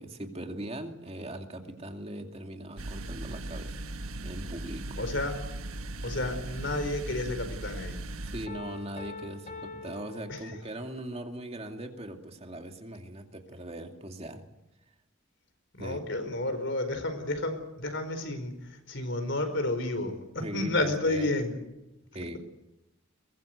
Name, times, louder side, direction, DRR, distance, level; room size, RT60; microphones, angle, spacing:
voice 1, 0.0-3.8 4.2-5.0 8.2-14.4 15.8-16.0 20.4-21.3 22.1-22.4, right 1 dB, 30° right, 4 dB, 2.4 m, -40 dB
sound 1, 2.8-8.5, right 2 dB, 90° right, 1.3 m, -38 dB
voice 2, 5.0-5.3 6.0-8.0 10.3-10.5 15.7-21.6, left 2 dB, 55° left, 8 dB, 4.7 m, -31 dB
Piano, 8.5-11.0, left 3 dB, 35° left, 6.0 m, -44 dB
23.0 x 21.5 x 8.0 m, 0.92 s
head